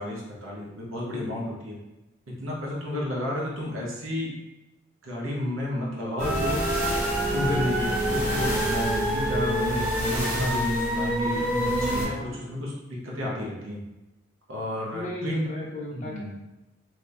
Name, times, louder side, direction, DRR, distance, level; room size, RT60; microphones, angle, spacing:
voice 1, 0.0-1.8 2.3-4.3 5.0-6.6 7.3-13.8 14.5-15.5 15.9-16.3, left 1 dB, 80° right, -3 dB, 0.9 m, -32 dB
sound 1, 6.2-12.1, equal, 35° right, 1.1 m, -26 dB
voice 2, 12.0-12.6 14.9-16.4, left 1 dB, 35° left, -3 dB, 0.7 m, -37 dB
2.6 x 2.6 x 3.4 m, 1.0 s
head